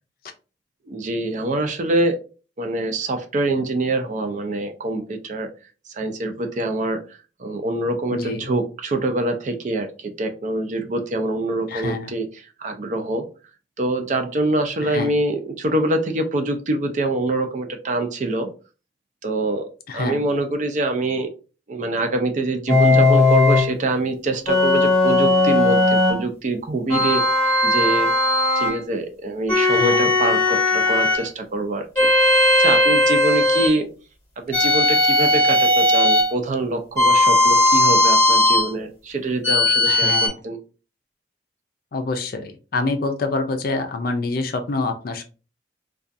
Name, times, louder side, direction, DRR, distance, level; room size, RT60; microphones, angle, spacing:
voice 1, 0.9-2.2 2.6-5.5 5.9-12.3 12.6-13.3 13.8-18.5 19.2-19.7 19.9-21.3 21.7-27.2 27.6-28.1 28.6-32.1 32.6-33.9 34.4-40.6, right 2 dB, 45° right, 5 dB, 0.4 m, -25 dB
voice 2, 8.1-8.5 11.7-12.1 14.8-15.1 19.9-20.2 29.7-30.1 39.8-40.3 41.9-45.2, left 3 dB, 55° left, 7 dB, 0.4 m, -26 dB
sound 1, 22.7-23.7 24.5-26.2 26.9-28.8 29.5-31.2 32.0-33.8 34.5-36.3 37.0-38.7 39.4-40.3, left 2 dB, 20° left, 0.9 m, -17 dB
2.4 x 2.3 x 2.5 m, 0.34 s
head